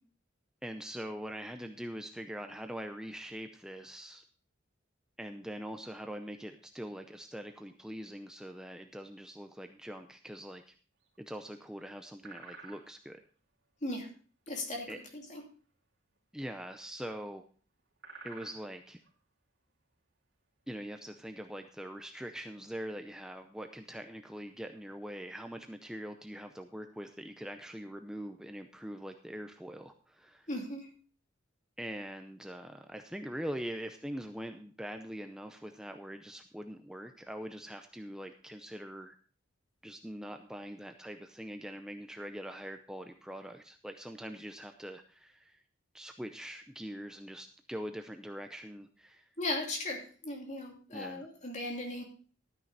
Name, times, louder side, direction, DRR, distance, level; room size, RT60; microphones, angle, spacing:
voice 1, 0.6-4.2 5.2-10.7 11.2-13.2 14.9-15.0 16.3-17.4 18.2-19.0 20.7-30.5 31.8-39.2 39.8-45.6 45.9-49.3 50.9-51.3, equal, 5° right, 6 dB, 0.6 m, -43 dB
sound 1, 11.0-11.5 11.8-11.9 12.2-13.2 13.8-15.1 15.4-15.8 16.0-16.2 16.4-16.6 17.3-17.5 17.8-19.2 19.5-19.9 20.4-21.5 21.9-22.3 22.7-22.8 23.1-23.4 24.2-24.3 24.6-24.8, right 4 dB, 65° right, 2.8 m, -53 dB
voice 2, 14.5-15.4 30.5-30.9 49.4-52.0, left 2 dB, 40° left, 1 dB, 2.8 m, -37 dB
13.0 x 9.3 x 4.0 m, 0.41 s
head